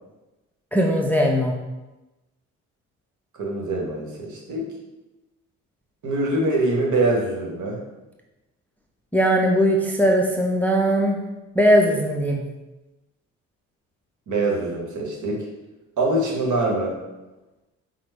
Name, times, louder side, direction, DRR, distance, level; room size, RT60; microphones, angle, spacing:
voice 1, 0.7-1.5 9.1-11.2 11.5-12.4, equal, 5° left, 0 dB, 0.4 m, -19 dB
voice 2, 3.4-4.7 6.0-7.8 14.3-15.5 16.0-16.9, right 2 dB, 55° right, -1 dB, 1.1 m, -24 dB
5.0 x 2.0 x 3.3 m, 1.1 s
hypercardioid pair, 55°, 35 cm